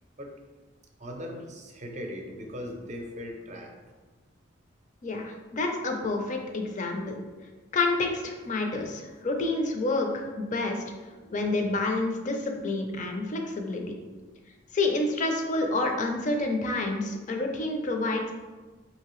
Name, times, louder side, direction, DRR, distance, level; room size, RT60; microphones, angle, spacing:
voice 1, 1.0-3.9 11.1-11.8, equal, 40° right, 2 dB, 0.6 m, -40 dB
voice 2, 5.0-7.1 7.7-10.8 11.3-13.9 14.7-18.3, left 2 dB, 40° left, 3 dB, 0.5 m, -28 dB
5.2 x 2.8 x 3.0 m, 1.3 s
head